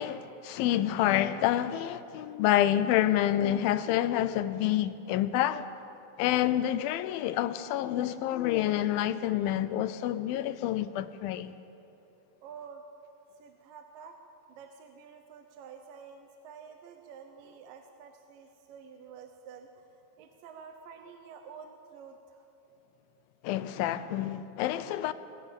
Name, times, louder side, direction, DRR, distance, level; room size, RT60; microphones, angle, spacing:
voice 1, 0.0-5.7 6.2-11.6 23.4-25.1, left 12 dB, 85° left, 2.5 m, -28 dB
voice 2, 12.4-12.8 13.4-14.2 14.5-22.4, right 6 dB, 75° right, 2.5 m, -49 dB
23.5 x 16.5 x 7.0 m
omnidirectional pair, 4.1 m